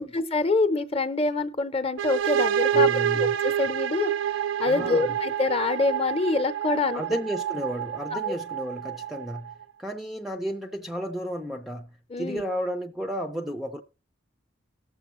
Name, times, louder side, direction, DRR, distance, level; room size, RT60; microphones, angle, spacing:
voice 1, 0.0-7.0 8.1-8.3 12.1-12.4, left 3 dB, 30° left, 0.7 m, -26 dB
sound 1, 2.0-9.6, right 9 dB, 85° right, 0.6 m, -28 dB
voice 2, 2.7-3.3 4.7-5.1 6.9-9.5 9.8-11.9 12.2-13.8, equal, ahead, 0.5 m, -32 dB
18.5 x 7.0 x 3.1 m
head